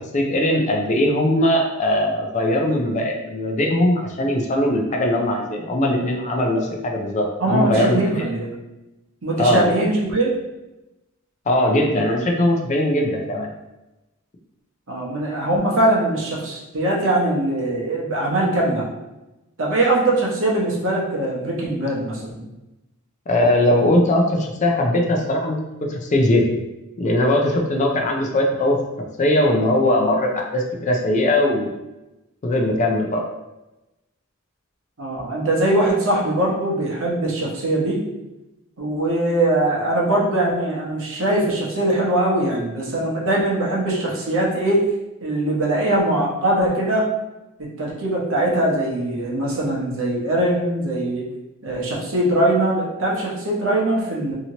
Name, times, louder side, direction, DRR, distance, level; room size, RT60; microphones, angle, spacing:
voice 1, 0.1-8.2 9.4-9.7 11.5-13.5 23.3-26.4 27.0-28.8 29.2-31.7 32.4-33.2, left 1 dB, 35° left, 1 dB, 0.4 m, -20 dB
voice 2, 7.4-8.6 9.2-10.3 14.9-18.9 19.6-22.5 35.0-38.0 38.8-44.9 45.2-47.1 47.6-51.3 51.6-54.3, right 1 dB, 65° right, -3 dB, 0.8 m, -21 dB
2.8 x 2.8 x 2.8 m, 0.98 s
head